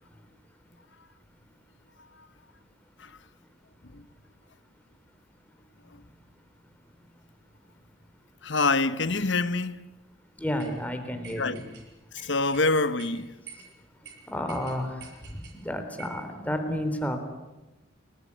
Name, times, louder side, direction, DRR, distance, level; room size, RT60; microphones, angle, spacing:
voice 1, 8.4-9.8 11.4-11.6 12.1-13.4, left 3 dB, 75° left, 1.3 m, -26 dB
voice 2, 10.4-11.6 14.3-15.1 15.6-17.2, equal, 10° left, 3.6 m, -31 dB
sound 1, 10.6-10.7 11.2-11.8 12.2-12.7 13.0-13.1 13.5-13.7 14.0-14.1 14.5-15.6 16.0-16.2, right 5 dB, 60° right, 7.6 m, -46 dB
28.0 x 20.0 x 10.0 m
head